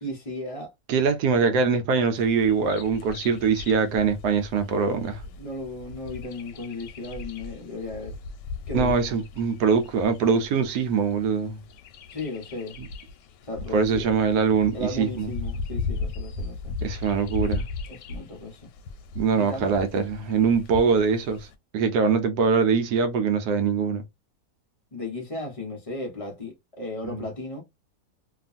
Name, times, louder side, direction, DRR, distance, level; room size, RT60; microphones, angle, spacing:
voice 1, 0.0-0.7 5.4-8.2 8.7-8.9 12.1-12.8 13.4-14.1 14.7-16.8 17.9-18.7 19.4-19.8 24.9-27.6, left 2 dB, 35° left, 0.5 m, -35 dB
voice 2, 0.9-5.2 8.7-11.6 12.8-12.9 13.7-15.3 16.8-17.6 19.2-21.5 21.7-24.0, right 5 dB, 75° right, 1.1 m, -23 dB
Bird vocalization bird call bird song, 2.2-21.5, left 3 dB, 90° left, 1.2 m, -37 dB
2.8 x 2.4 x 2.4 m
omnidirectional pair, 1.8 m